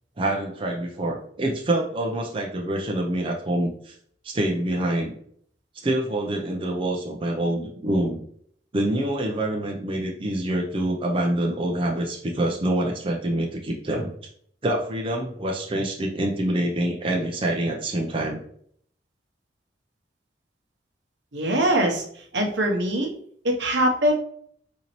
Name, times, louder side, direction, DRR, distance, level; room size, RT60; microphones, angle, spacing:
voice 1, 0.2-3.9 4.2-5.1 5.8-8.3 8.7-14.1 14.6-18.4, right 1 dB, 30° right, -1 dB, 0.5 m, -26 dB
voice 2, 21.3-22.0 22.3-23.1 23.4-24.1, right 1 dB, 75° right, 2 dB, 0.8 m, -22 dB
3.9 x 2.7 x 2.9 m, 0.63 s
head